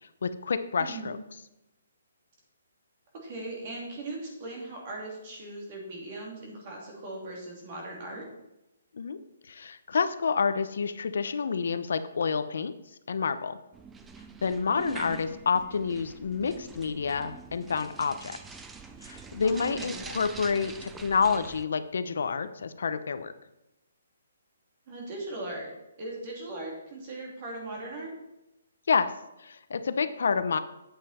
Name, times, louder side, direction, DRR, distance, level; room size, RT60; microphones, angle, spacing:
voice 1, 0.2-1.2 8.9-9.2 9.5-12.8 13.1-13.6 14.4-18.4 19.0-23.3 28.9-29.1 29.4-30.6, left 5 dB, 70° left, 11 dB, 0.7 m, -28 dB
voice 2, 0.8-1.2 3.2-8.2 14.8-15.3 19.4-20.0 24.9-25.7 26.0-28.1, right 2 dB, 35° right, -1 dB, 2.9 m, -39 dB
sound 1, 13.7-21.6, right 5 dB, 10° right, 0.4 m, -45 dB
8.8 x 7.5 x 4.3 m, 0.92 s
hypercardioid pair, 165°, 0 cm